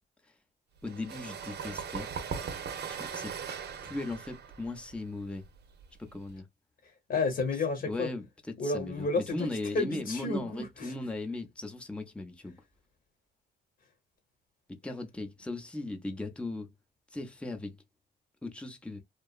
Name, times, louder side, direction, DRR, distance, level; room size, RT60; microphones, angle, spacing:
voice 1, 0.8-2.1 2.9-3.4 3.8-5.4 6.0-6.5 7.8-12.6 14.7-16.7 17.1-17.8 18.4-19.0, left 2 dB, 5° left, 0.7 m, -38 dB
sound 1, 0.8-6.3, right 7 dB, 55° right, 0.7 m, -39 dB
voice 2, 6.8-8.1 8.6-9.5 9.7-10.9, left 3 dB, 50° left, 1.0 m, -31 dB
2.9 x 2.2 x 2.3 m
cardioid pair, 90°, 20 cm